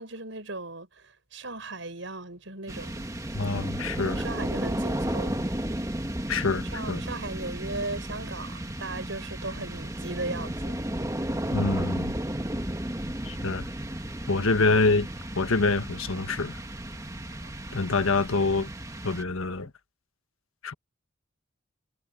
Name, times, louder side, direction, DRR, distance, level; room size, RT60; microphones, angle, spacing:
voice 1, 0.0-3.1 4.0-5.4 6.5-10.8 11.2-11.3 17.4-17.5, right 2 dB, 65° right, 6.0 m, -37 dB
sound 1, 2.7-19.6, right 1 dB, 15° right, 1.6 m, -33 dB
voice 2, 3.3-4.2 6.3-7.0 11.5-12.2 13.2-13.6 14.3-15.1 15.3-16.6 17.7-18.7 19.0-19.7 20.6-20.7, left 3 dB, 90° left, 1.4 m, -26 dB
head